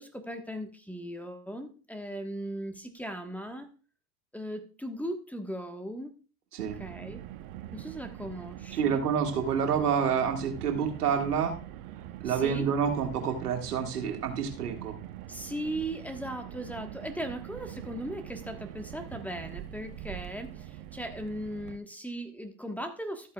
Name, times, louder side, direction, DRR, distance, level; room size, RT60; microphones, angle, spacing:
voice 1, 0.0-3.7 4.3-6.1 6.8-7.2 7.7-9.0 12.2-12.7 15.3-23.3, right 1 dB, 5° left, 5 dB, 1.2 m, -38 dB
Car, 6.6-21.8, right 12 dB, 65° right, 1.1 m, -43 dB
voice 2, 8.7-11.6 12.2-15.0, right 7 dB, 85° right, 3 dB, 1.9 m, -28 dB
13.0 x 8.5 x 2.3 m, 0.36 s
hypercardioid pair, 90°, 45 cm